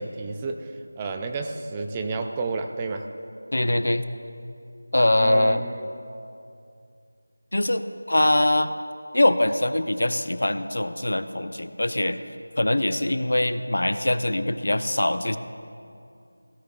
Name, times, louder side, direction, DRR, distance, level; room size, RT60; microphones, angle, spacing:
voice 1, 0.0-3.1 5.2-5.9, right 3 dB, 15° right, 5 dB, 0.4 m, -31 dB
voice 2, 3.5-4.0 4.9-5.6 7.5-8.7 9.1-12.2 12.6-15.4, left 1 dB, 75° left, 11 dB, 0.6 m, -22 dB
16.5 x 14.5 x 2.5 m, 2.5 s
figure-of-eight pair, 170°, 0 cm